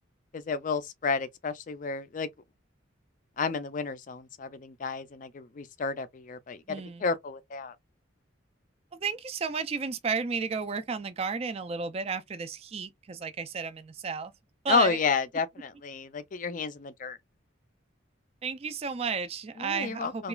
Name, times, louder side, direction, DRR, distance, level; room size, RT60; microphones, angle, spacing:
voice 1, 0.3-2.3 3.4-7.7 14.7-17.2 19.6-20.3, left 5 dB, 40° left, 0.4 m, -31 dB
voice 2, 6.7-7.1 9.0-14.3 14.6-15.0 18.4-20.3, right 5 dB, 30° right, 0.3 m, -33 dB
2.9 x 2.3 x 2.2 m
head